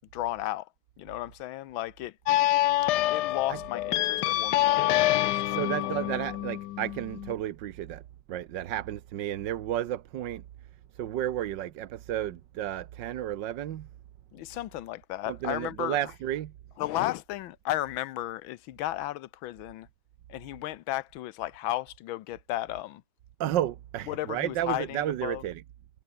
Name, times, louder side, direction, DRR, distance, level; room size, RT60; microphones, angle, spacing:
voice 1, 0.1-0.7 1.0-2.2 3.1-5.7 14.3-16.0 16.8-19.9 20.3-23.0 24.1-25.4, left 15 dB, 90° left, 1.5 m, -34 dB
sound 1, 2.3-7.3, left 15 dB, 70° left, 1.1 m, -26 dB
voice 2, 5.5-8.0 8.3-10.4 11.0-13.9 15.3-16.5 23.4-25.6, right 12 dB, 70° right, 1.5 m, -32 dB
omnidirectional pair, 2.1 m